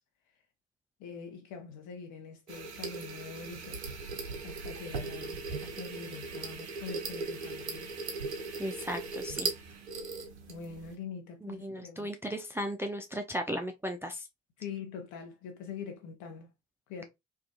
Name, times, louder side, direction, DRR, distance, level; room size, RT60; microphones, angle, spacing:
voice 1, 1.0-3.8 4.4-7.9 10.5-12.1 14.6-16.5 16.9-17.0, left 6 dB, 60° left, 0.9 m, -44 dB
sound 1, 2.5-10.9, right 4 dB, 80° right, 0.5 m, -38 dB
voice 2, 8.6-9.5 11.4-14.3, equal, 10° right, 0.3 m, -36 dB
2.4 x 2.3 x 2.5 m
figure-of-eight pair, 40°, 34 cm